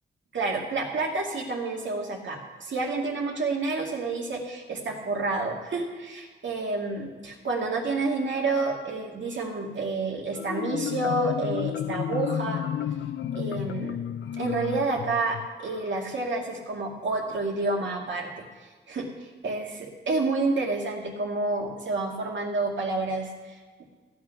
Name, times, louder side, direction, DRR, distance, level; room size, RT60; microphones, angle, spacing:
voice 1, 0.3-12.6 13.3-14.0 14.4-18.4 18.9-23.8, right 3 dB, 75° right, -1 dB, 2.3 m, -29 dB
Marimba xylophone, 10.3-15.9, left 10 dB, 80° left, 0.5 m, -32 dB
15.0 x 8.6 x 5.9 m, 1.4 s
wide cardioid pair, 110°, 19 cm